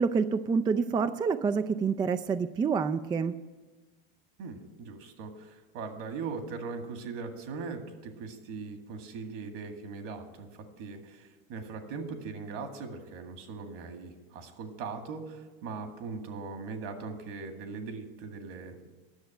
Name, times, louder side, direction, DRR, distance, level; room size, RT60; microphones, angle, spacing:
voice 1, 0.0-3.4, right 5 dB, 15° right, 11 dB, 0.3 m, -27 dB
voice 2, 4.4-18.9, right 4 dB, 65° right, 6 dB, 2.0 m, -40 dB
10.5 x 6.7 x 9.0 m, 1.2 s
supercardioid pair, 105°, 29 cm